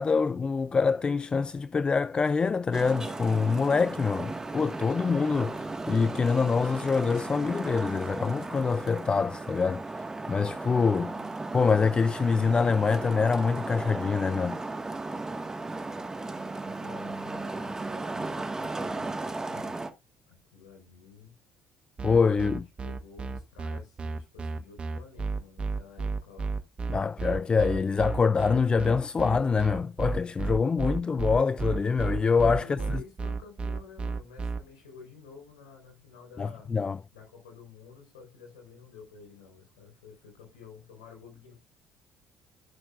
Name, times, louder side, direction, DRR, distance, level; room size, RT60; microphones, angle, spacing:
voice 1, 0.0-11.1 11.5-14.6 22.0-22.7 26.9-32.8 36.4-37.0, left 5 dB, 30° left, 0.4 m, -25 dB
Traffic noise roadway noise, 2.7-19.9, right 2 dB, 20° right, 1.8 m, -36 dB
voice 2, 11.1-11.8 16.6-19.8 20.3-21.4 22.3-26.5 32.6-36.7 37.1-41.5, left 5 dB, 80° left, 4.9 m, -51 dB
sound 1, 22.0-34.6, right 4 dB, 35° right, 1.4 m, -32 dB
17.0 x 6.4 x 2.6 m
hypercardioid pair, 50°, 3 cm